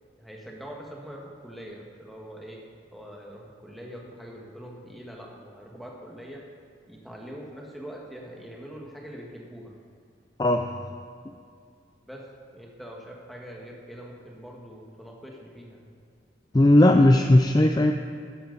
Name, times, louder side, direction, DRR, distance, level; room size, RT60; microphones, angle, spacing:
voice 1, 0.2-2.6 2.9-6.4 6.9-9.7 12.1-12.2 12.5-15.8, equal, ahead, -2 dB, 1.5 m, -43 dB
voice 2, 10.4-10.7 16.5-17.9, left 1 dB, 20° left, 5 dB, 0.4 m, -17 dB
13.0 x 10.5 x 4.0 m, 2.4 s
head